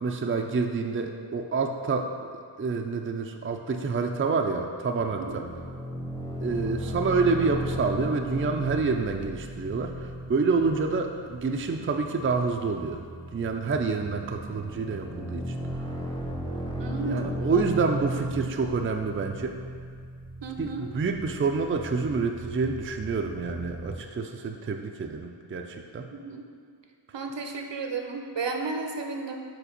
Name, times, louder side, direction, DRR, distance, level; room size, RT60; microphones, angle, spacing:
voice 1, 0.0-2.1 2.6-5.4 6.4-13.0 13.3-15.5 17.0-19.5 20.6-26.1, right 4 dB, 30° right, 3 dB, 0.4 m, -28 dB
sound 1, 5.0-24.0, right 1 dB, 10° left, 0.7 m, -36 dB
voice 2, 16.8-17.3 20.4-20.9 26.1-26.4 27.1-29.4, right 3 dB, 60° right, 3 dB, 0.7 m, -33 dB
5.0 x 3.9 x 5.1 m, 2.1 s
cardioid pair, 40°, 48 cm